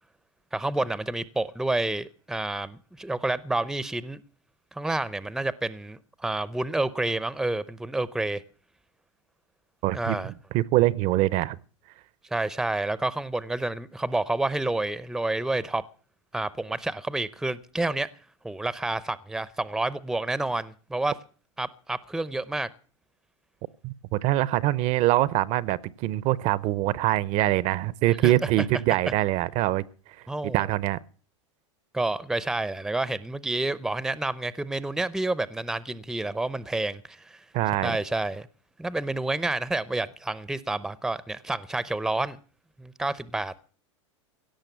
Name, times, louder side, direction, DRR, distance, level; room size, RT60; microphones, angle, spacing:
voice 1, 0.5-4.2 4.7-8.4 9.9-10.3 12.3-15.8 16.3-18.1 18.4-21.2 21.6-22.7 28.2-28.5 30.3-30.7 31.9-37.4 37.8-38.5 38.8-42.4 42.8-43.5, right 2 dB, 5° right, 0.6 m, -29 dB
voice 2, 9.8-10.2 10.5-11.6 23.8-29.8 30.5-31.0 37.5-38.0, right 16 dB, 45° right, 0.6 m, -24 dB
17.0 x 6.5 x 9.1 m
hypercardioid pair, 115°, 17 cm